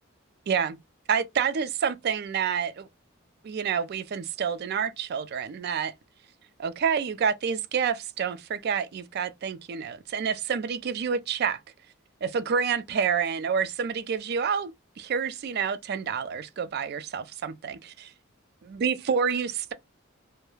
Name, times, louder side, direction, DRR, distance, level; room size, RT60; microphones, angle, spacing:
voice 1, 0.5-0.8 1.1-2.9 3.4-5.9 6.6-11.6 12.2-14.7 15.0-18.1 18.7-19.7, right 6 dB, 50° right, 0.3 m, -28 dB
2.3 x 2.0 x 3.0 m
head